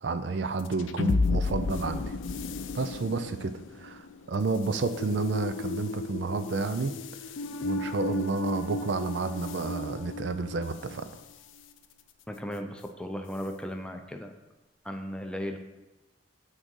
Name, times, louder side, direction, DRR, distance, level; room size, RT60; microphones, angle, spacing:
voice 1, 0.0-2.0 2.7-6.9 7.6-11.1, right 3 dB, 65° right, 10 dB, 0.5 m, -30 dB
sound 1, 0.6-11.1, left 3 dB, 80° left, 0.4 m, -33 dB
voice 2, 12.3-14.3 14.8-15.6, equal, 5° left, 4 dB, 0.5 m, -36 dB
6.3 x 3.9 x 6.2 m, 1.1 s
head